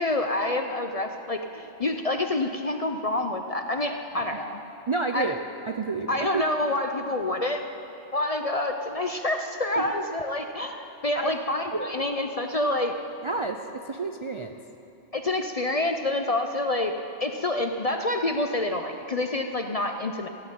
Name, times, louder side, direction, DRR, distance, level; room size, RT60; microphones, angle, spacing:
voice 1, 0.0-4.6 5.1-5.4 6.1-7.6 8.1-12.9 15.1-16.9 17.2-20.3, left 2 dB, 40° left, 5 dB, 0.5 m, -27 dB
voice 2, 4.9-5.4 5.7-6.4 9.8-10.1 11.1-11.4 11.7-11.9 13.2-13.6 13.8-14.5, right 4 dB, 45° right, 5 dB, 0.4 m, -30 dB
15.0 x 8.4 x 9.1 m, 2.9 s
omnidirectional pair, 1.2 m